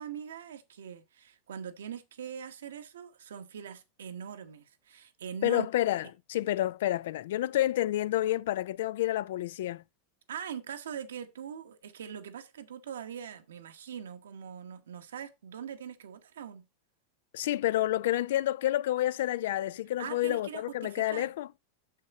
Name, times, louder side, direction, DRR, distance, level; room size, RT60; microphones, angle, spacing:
voice 1, 0.0-5.7 10.3-16.6 20.0-21.3, right 8 dB, 85° right, 1.0 m, -42 dB
voice 2, 5.4-9.8 17.3-21.5, left 14 dB, 70° left, 0.3 m, -29 dB
6.7 x 5.6 x 4.1 m
hypercardioid pair, 100°, 0 cm